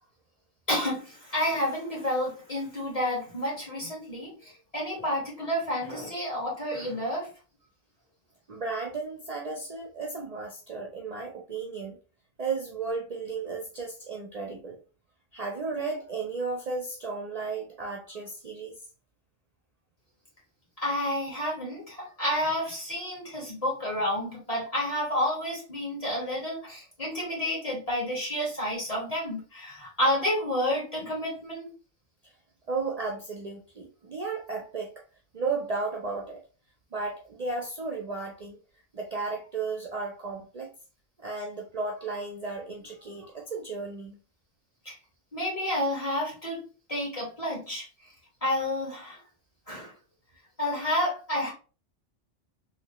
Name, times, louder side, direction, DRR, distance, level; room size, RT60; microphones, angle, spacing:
voice 1, 0.7-7.3 20.8-31.7 44.9-45.0 45.3-46.6 46.9-47.8 48.4-49.2 49.7-49.9 50.6-51.5, left 1 dB, 30° left, -4 dB, 1.8 m, -30 dB
voice 2, 8.5-12.0 12.4-14.8 15.3-18.8 32.7-34.9 35.3-36.4 36.9-38.6 38.9-40.7 41.2-44.2, right 4 dB, 45° right, 0 dB, 0.6 m, -34 dB
3.1 x 2.9 x 3.0 m, 0.35 s
omnidirectional pair, 1.2 m